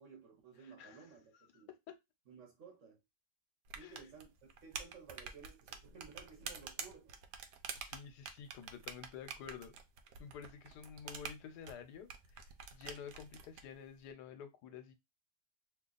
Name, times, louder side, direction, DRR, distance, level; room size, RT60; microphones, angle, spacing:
voice 1, 0.0-1.7 2.3-3.0 3.7-4.3 4.6-7.2, right 6 dB, 55° right, 1.2 m, -56 dB
voice 2, 0.6-1.1 1.3-1.9 3.8-4.1 7.7-9.7 10.2-15.0, left 7 dB, 80° left, 1.2 m, -51 dB
sound 1, 3.7-13.6, right 6 dB, 80° right, 1.2 m, -48 dB
2.9 x 2.3 x 3.8 m
omnidirectional pair, 1.8 m